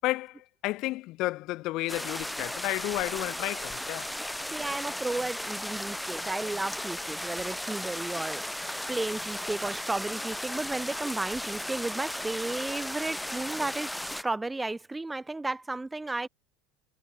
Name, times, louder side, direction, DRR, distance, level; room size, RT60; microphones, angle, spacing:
voice 1, 0.0-4.1, left 19 dB, 55° left, 5.5 m, -32 dB
sound 1, 1.9-14.2, left 1 dB, 5° left, 1.6 m, -35 dB
voice 2, 4.5-8.4 8.9-16.3, right 2 dB, 10° right, 5.0 m, -33 dB
hypercardioid pair, 80°, 0 cm